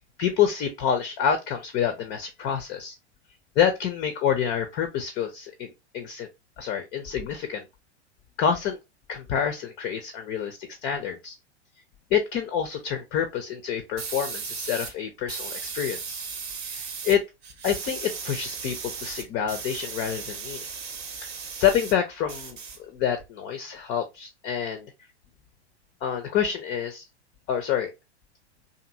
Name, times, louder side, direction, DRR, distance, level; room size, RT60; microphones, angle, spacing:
voice 1, 0.2-2.9 3.6-6.3 6.6-7.7 8.4-8.8 9.1-11.3 12.1-16.2 16.6-17.2 17.6-20.7 21.2-24.9 26.0-27.0 27.5-27.9, left 8 dB, 25° left, 0.4 m, -27 dB
sound 1, 14.0-14.9 15.3-17.2 17.4-21.9 22.2-23.2, right 5 dB, 35° right, 0.7 m, -36 dB
2.6 x 2.5 x 2.4 m
figure-of-eight pair, 95°, 35 cm